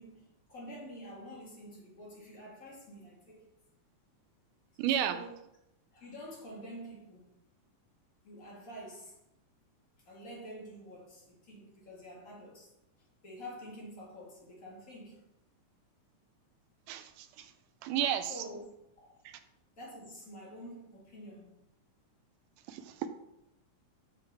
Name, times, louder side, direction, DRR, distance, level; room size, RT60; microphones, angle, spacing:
voice 1, 0.0-3.4 4.9-5.4 5.9-7.3 8.2-9.1 10.1-12.7 13.2-15.2 18.2-18.6 19.0-19.1 19.8-21.5, equal, 35° left, -4 dB, 1.7 m, -48 dB
voice 2, 4.8-5.2 16.9-17.1 17.8-18.3 19.3-19.4 22.7-23.1, right 10 dB, 85° right, 10 dB, 2.1 m, -31 dB
6.4 x 6.3 x 3.4 m, 0.85 s
omnidirectional pair, 3.6 m